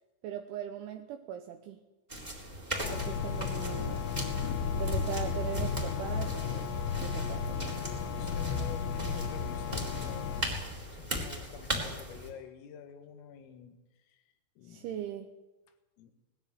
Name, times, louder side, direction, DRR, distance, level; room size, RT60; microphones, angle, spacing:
voice 1, 0.2-1.8 2.9-4.0 4.7-6.7 7.0-7.8 8.2-8.3 14.6-15.3, right 10 dB, 75° right, 5 dB, 3.2 m, -40 dB
sound 1, 2.1-12.3, equal, 10° right, 3.2 m, -39 dB
sound 2, 2.8-10.4, left 6 dB, 70° left, 3.4 m, -34 dB
voice 2, 8.2-13.8 14.1-14.2 14.6-15.0 16.0-16.1, left 7 dB, 85° left, 7 dB, 4.4 m, -48 dB
20.0 x 15.0 x 9.2 m, 1.1 s
omnidirectional pair, 5.8 m